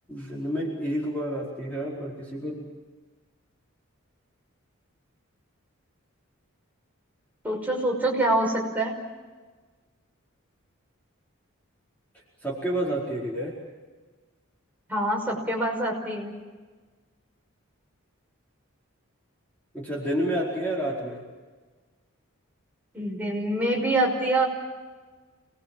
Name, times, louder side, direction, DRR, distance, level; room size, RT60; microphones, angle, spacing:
voice 1, 0.1-2.6 12.4-13.5 19.7-21.2, right 1 dB, 10° left, -5 dB, 4.8 m, -29 dB
voice 2, 7.4-8.9 14.9-16.3 22.9-24.5, right 1 dB, 10° right, -1 dB, 5.7 m, -25 dB
29.0 x 20.5 x 7.6 m, 1.4 s
head